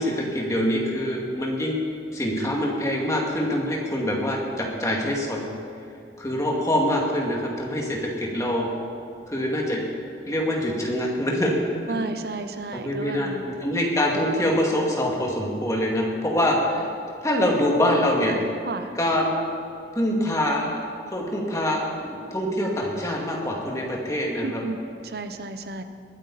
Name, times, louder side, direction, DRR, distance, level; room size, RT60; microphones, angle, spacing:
voice 1, 0.0-1.8 2.1-5.4 6.2-8.7 9.3-9.8 10.3-11.6 12.0-12.1 12.7-13.3 13.6-16.8 17.2-18.4 19.0-19.3 19.9-20.8 21.1-24.6, left 1 dB, 20° left, -2 dB, 2.2 m, -24 dB
voice 2, 11.9-13.4 16.8-16.9 18.6-18.9 24.4-25.8, right 3 dB, 60° right, 9 dB, 0.8 m, -32 dB
21.0 x 9.3 x 4.2 m, 2.6 s
head